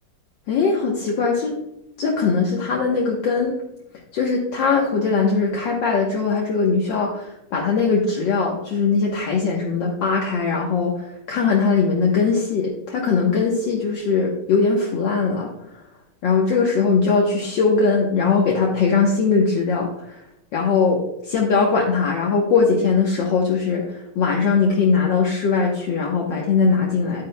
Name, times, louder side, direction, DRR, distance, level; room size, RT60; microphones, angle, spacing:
voice 1, 0.5-1.6 2.0-3.6 4.1-15.8 16.2-20.2 20.5-27.2, left 5 dB, 60° left, -2 dB, 1.7 m, -20 dB
10.5 x 9.5 x 2.2 m, 0.83 s
omnidirectional pair, 2.3 m